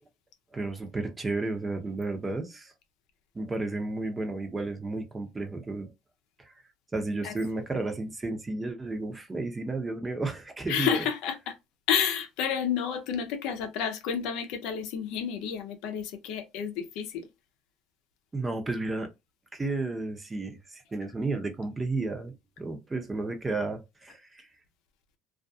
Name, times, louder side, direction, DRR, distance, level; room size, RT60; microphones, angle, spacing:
voice 1, 0.5-2.7 3.3-5.9 6.4-6.5 6.9-11.0 18.3-19.1 19.5-24.5, right 3 dB, 20° right, 0.7 m, -32 dB
voice 2, 7.2-7.6 10.7-11.6 11.9-17.3, left 8 dB, 75° left, 0.5 m, -30 dB
2.4 x 2.3 x 2.6 m
supercardioid pair, 85°, 0 cm